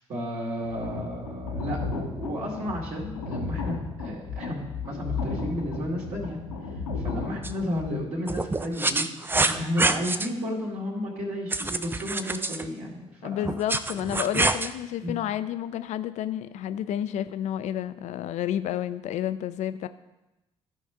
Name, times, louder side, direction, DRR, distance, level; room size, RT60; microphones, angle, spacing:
voice 1, 0.1-6.4 7.0-9.0 9.4-13.5 15.0-15.1, left 1 dB, 50° right, -5 dB, 2.2 m, -32 dB
sound 1, 0.7-7.9, left 4 dB, 80° left, 1.0 m, -34 dB
sound 2, 7.4-7.5 8.3-10.3 11.5-12.7 13.4-14.7, right 3 dB, 15° right, 0.5 m, -26 dB
voice 2, 13.2-19.9, left 11 dB, 50° left, 13 dB, 0.5 m, -30 dB
14.0 x 5.4 x 3.6 m, 0.99 s
figure-of-eight pair, 45°, 15 cm